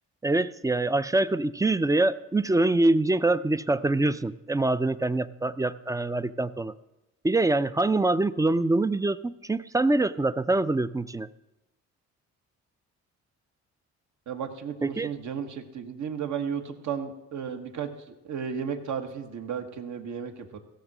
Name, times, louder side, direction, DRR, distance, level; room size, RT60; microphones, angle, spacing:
voice 1, 0.2-6.7 7.2-11.3 14.8-15.1, right 2 dB, 10° right, 14 dB, 0.4 m, -24 dB
voice 2, 14.3-20.6, right 7 dB, 70° right, 5 dB, 1.4 m, -34 dB
15.5 x 6.5 x 6.1 m, 0.93 s
cardioid pair, 90°, 30 cm